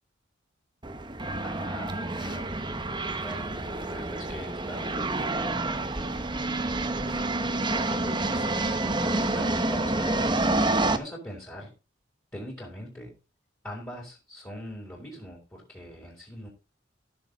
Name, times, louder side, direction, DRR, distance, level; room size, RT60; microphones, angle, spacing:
sound 1, 0.8-11.0, right 2 dB, 25° right, 1.0 m, -28 dB
voice 1, 1.4-2.5 3.2-5.9 7.0-11.7 12.3-13.1 13.6-16.5, equal, 15° left, -4 dB, 4.7 m, -41 dB
15.5 x 7.0 x 4.1 m, 0.31 s
head